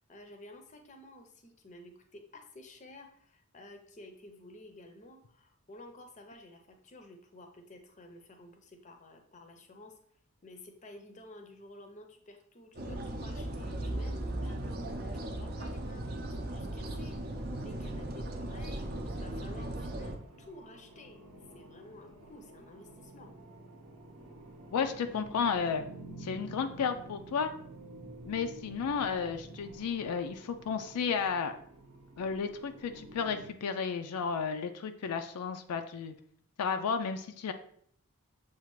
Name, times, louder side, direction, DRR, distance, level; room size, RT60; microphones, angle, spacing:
voice 1, 0.1-9.9 10.4-14.8 15.1-21.2 21.5-23.3, left 1 dB, 35° left, 4 dB, 0.6 m, -52 dB
sound 1, 12.7-20.1, right 1 dB, 45° right, 0.5 m, -37 dB
sound 2, 16.2-33.5, right 1 dB, 80° right, 0.8 m, -50 dB
voice 2, 24.7-25.9 26.2-27.5 28.2-31.5 32.2-36.1 36.6-37.5, left 6 dB, 85° left, 7 dB, 0.4 m, -33 dB
6.9 x 2.4 x 3.0 m, 0.63 s
head